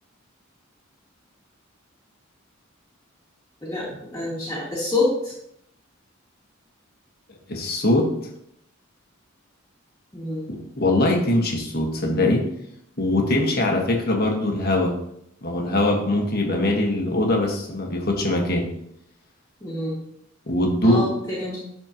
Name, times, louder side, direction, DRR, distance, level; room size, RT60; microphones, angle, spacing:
voice 1, 3.6-5.3 10.1-10.5 19.6-20.0 20.8-21.6, left 2 dB, 15° left, -9 dB, 2.0 m, -27 dB
voice 2, 7.5-8.1 10.5-12.4 13.0-14.9 15.4-18.7 20.5-21.0, left 1 dB, 50° left, 1 dB, 1.5 m, -22 dB
12.0 x 4.4 x 3.0 m, 0.71 s
head